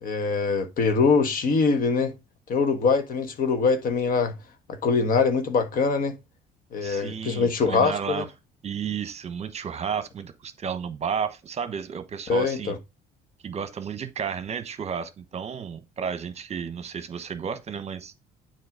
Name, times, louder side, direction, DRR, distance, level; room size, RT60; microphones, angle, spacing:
voice 1, 0.0-2.1 2.5-4.3 4.7-6.1 6.7-8.2 12.3-12.7, left 4 dB, 55° left, 1.3 m, -23 dB
voice 2, 6.8-8.2 8.6-12.7 13.4-18.1, right 7 dB, 40° right, 1.0 m, -32 dB
7.7 x 4.6 x 3.6 m
cardioid pair, 110°, 17 cm